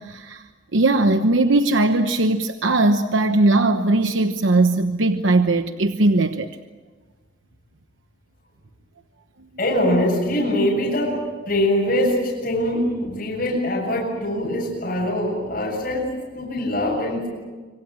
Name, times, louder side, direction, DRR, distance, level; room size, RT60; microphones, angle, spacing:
voice 1, 0.0-6.5, right 2 dB, 90° right, 8 dB, 1.0 m, -19 dB
voice 2, 9.6-11.2 11.5-17.3, left 1 dB, 45° left, -3 dB, 7.5 m, -23 dB
25.5 x 25.5 x 7.7 m, 1.4 s
head